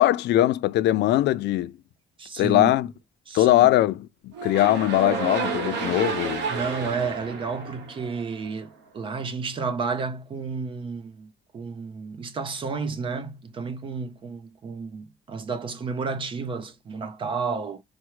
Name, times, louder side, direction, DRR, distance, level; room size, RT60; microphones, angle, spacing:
voice 1, 0.0-1.7 2.4-2.9 3.3-6.5, left 15 dB, 75° left, 0.5 m, -21 dB
voice 2, 2.2-2.7 3.3-3.7 6.5-17.8, right 5 dB, 30° right, 0.6 m, -31 dB
sound 1, 4.3-8.5, right 5 dB, 75° right, 1.1 m, -30 dB
4.5 x 2.2 x 4.6 m
cardioid pair, 170°, 18 cm